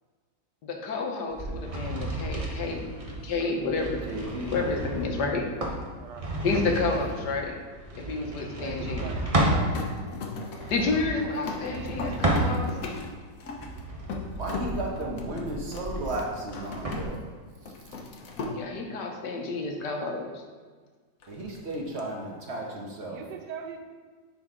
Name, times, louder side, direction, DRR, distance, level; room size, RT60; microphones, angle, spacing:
voice 1, 0.6-2.8 3.2-4.0 4.5-5.4 6.4-7.6 8.0-9.2 10.7-12.7 18.5-20.4, left 3 dB, 85° left, 2 dB, 1.6 m, -30 dB
sound 1, 1.3-9.7 10.5-12.9 13.4-17.0, right 1 dB, 25° right, 0.8 m, -32 dB
voice 2, 4.1-5.2 14.4-17.2 17.6-17.9 21.3-23.2, right 1 dB, 45° right, -1 dB, 1.2 m, -34 dB
voice 3, 6.0-6.4 8.5-9.7 11.2-12.2 23.1-23.8, right 6 dB, 85° right, 4 dB, 1.4 m, -42 dB
sound 2, 9.7-17.3 17.6-18.6 21.2-22.0, left 3 dB, 60° left, 1.2 m, -38 dB
10.0 x 4.1 x 3.7 m, 1.5 s
omnidirectional pair, 1.8 m